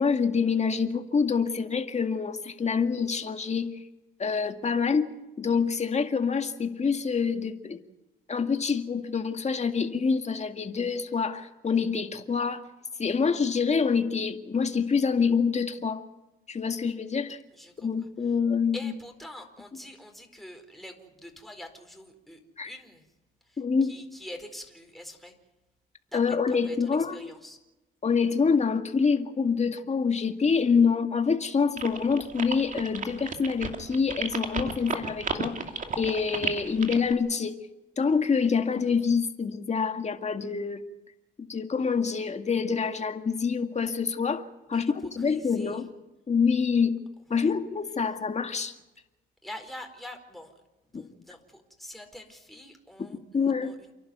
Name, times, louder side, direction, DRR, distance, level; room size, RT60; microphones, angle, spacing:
voice 1, 0.0-3.8 4.2-7.8 8.3-12.7 13.0-16.0 16.5-17.4 17.8-18.9 22.6-22.7 23.6-23.9 26.1-27.3 28.0-35.6 36.0-37.6 38.0-40.8 41.5-45.9 46.3-47.0 47.3-48.8 50.9-51.0 53.3-53.7, left 5 dB, 35° left, 6 dB, 2.1 m, -26 dB
voice 2, 17.5-17.9 18.7-23.1 23.4-25.3 26.1-27.6 44.7-45.8 47.3-47.5 49.4-50.5 50.9-53.9, left 1 dB, ahead, 3 dB, 4.4 m, -45 dB
sound 1, 31.8-37.1, right 5 dB, 40° right, 2.6 m, -33 dB
29.0 x 11.5 x 9.5 m, 1.0 s
cardioid pair, 90°, 20 cm